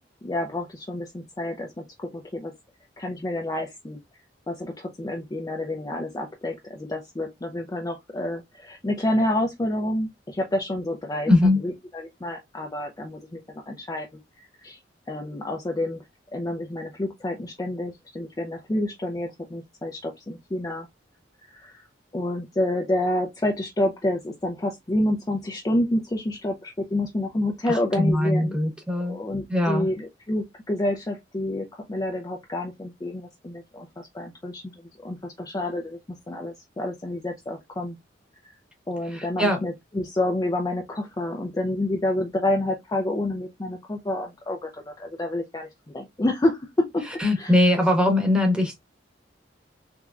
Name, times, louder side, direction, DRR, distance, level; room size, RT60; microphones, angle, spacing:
voice 1, 0.2-2.5 3.0-4.0 4.5-11.3 11.6-14.1 14.6-14.8 15.1-16.0 16.3-20.9 21.5-21.9 22.1-28.6 28.9-33.9 34.1-34.6 35.0-36.0 36.3-38.0 38.9-47.0 47.4-47.5, left 1 dB, 20° left, 0.4 m, -28 dB
voice 2, 11.3-11.6 27.7-29.2 29.5-29.9 39.1-39.7 47.1-48.8, left 1 dB, 5° right, 1.0 m, -21 dB
3.5 x 3.1 x 2.3 m
head